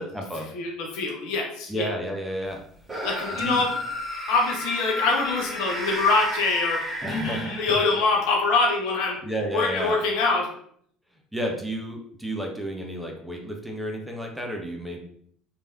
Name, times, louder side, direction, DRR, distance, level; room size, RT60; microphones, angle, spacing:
voice 1, 0.0-0.5 1.7-2.6 3.3-3.6 7.0-7.8 9.2-10.0 11.3-15.0, right 1 dB, ahead, 0 dB, 0.7 m, -31 dB
voice 2, 0.5-1.9 3.0-3.7 4.3-9.2 9.5-10.5, left 3 dB, 60° left, 0 dB, 0.6 m, -24 dB
sound 1, 2.8-8.1, equal, 20° right, 1.1 m, -32 dB
3.2 x 2.7 x 2.2 m, 0.63 s
figure-of-eight pair, 60°, 0 cm